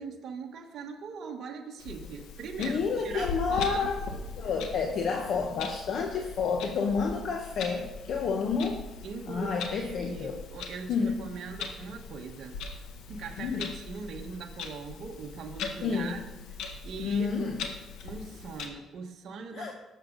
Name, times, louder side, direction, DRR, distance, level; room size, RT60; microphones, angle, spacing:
voice 1, 0.0-4.2 9.0-12.6 13.1-16.2 16.8-17.4 18.0-19.7, right 5 dB, 55° right, 1 dB, 1.6 m, -41 dB
Clock, 1.8-18.7, left 4 dB, 85° left, 1.5 m, -41 dB
voice 2, 2.6-4.0 4.4-8.9 9.3-10.4 10.9-11.2 13.4-13.7 15.8-16.2 17.0-17.6 19.5-19.7, left 5 dB, 60° left, 3 dB, 1.1 m, -30 dB
19.0 x 7.3 x 4.0 m, 1.2 s
cardioid pair, 120°, 0 cm